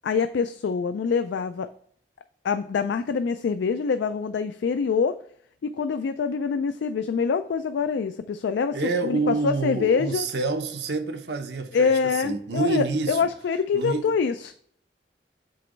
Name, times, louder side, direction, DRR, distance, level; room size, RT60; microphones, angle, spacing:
voice 1, 0.0-1.7 2.4-5.2 5.6-8.8 9.0-10.3 11.7-14.5, left 5 dB, 80° left, 10 dB, 0.3 m, -25 dB
voice 2, 8.7-11.9 12.2-13.2 13.7-14.1, right 3 dB, 75° right, 6 dB, 0.8 m, -27 dB
7.6 x 3.0 x 5.1 m, 0.65 s
head